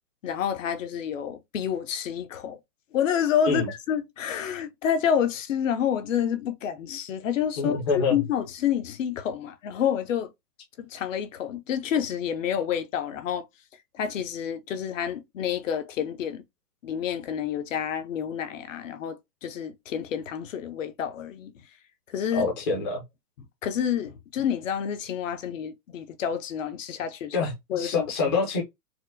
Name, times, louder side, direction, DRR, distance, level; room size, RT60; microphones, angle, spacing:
voice 1, 0.2-2.6 2.9-10.3 10.8-13.4 13.9-16.4 16.8-21.5 22.1-22.5 23.6-28.1, left 8 dB, 50° left, 0.7 m, -29 dB
voice 2, 7.6-8.2 22.3-23.0 27.3-28.6, left 4 dB, 15° left, 0.5 m, -26 dB
4.2 x 2.1 x 2.5 m
hypercardioid pair, 150°, 49 cm